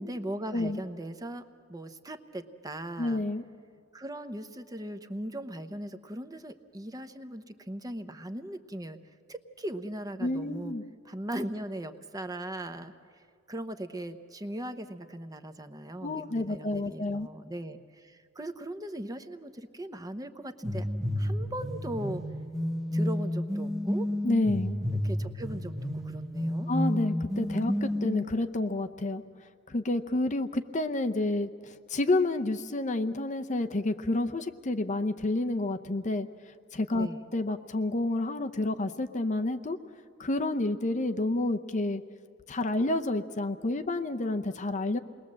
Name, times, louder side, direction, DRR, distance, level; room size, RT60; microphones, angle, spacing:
voice 1, 0.0-1.4 1.7-3.2 3.9-9.0 9.3-10.7 11.0-13.2 13.5-20.9 21.2-22.2 22.9-24.1 25.0-26.7 37.0-37.2, right 1 dB, 20° right, 8 dB, 0.9 m, -39 dB
voice 2, 3.0-3.4 10.2-10.8 16.0-17.3 24.2-24.8 26.7-29.2 29.7-36.3 36.7-39.8 40.2-42.0 42.5-45.0, left 2 dB, 35° left, 7 dB, 0.7 m, -29 dB
sound 1, 20.6-28.2, left 1 dB, ahead, 1.2 m, -31 dB
28.0 x 21.0 x 7.6 m, 2.2 s
head